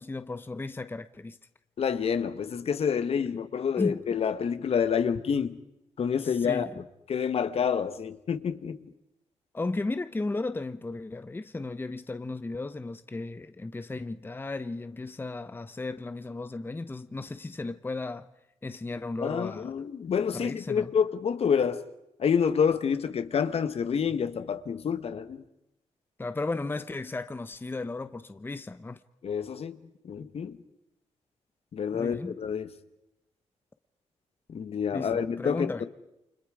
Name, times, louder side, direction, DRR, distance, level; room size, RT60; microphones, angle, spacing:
voice 1, 0.0-1.4 3.2-3.4 3.8-4.0 6.2-6.8 9.5-18.3 18.6-19.7 20.3-20.9 26.2-29.0 31.9-32.4 34.9-35.8, left 3 dB, 20° left, 0.8 m, -35 dB
voice 2, 1.8-5.6 6.0-6.7 7.1-8.9 19.2-21.8 22.2-25.4 29.2-29.8 30.0-30.6 31.7-32.7 34.5-35.9, left 7 dB, 60° left, 1.3 m, -28 dB
29.5 x 25.5 x 4.9 m
cardioid pair, 85°, 11 cm